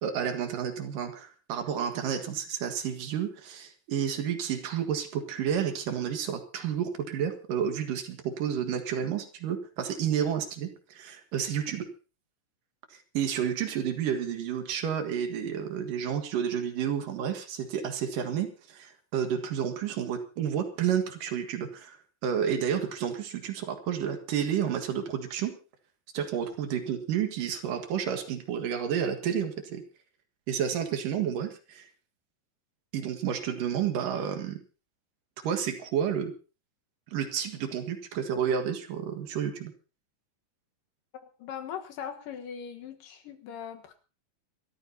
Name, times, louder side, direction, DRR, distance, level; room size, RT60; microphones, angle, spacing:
voice 1, 0.0-11.9 13.1-22.0 22.2-25.6 26.1-29.8 30.5-31.9 32.9-34.6 35.4-36.3 37.1-39.7, right 8 dB, 85° right, 7 dB, 3.3 m, -30 dB
voice 2, 41.4-43.9, left 8 dB, 90° left, 6 dB, 3.0 m, -40 dB
26.5 x 13.5 x 2.8 m, 0.34 s
omnidirectional pair, 3.8 m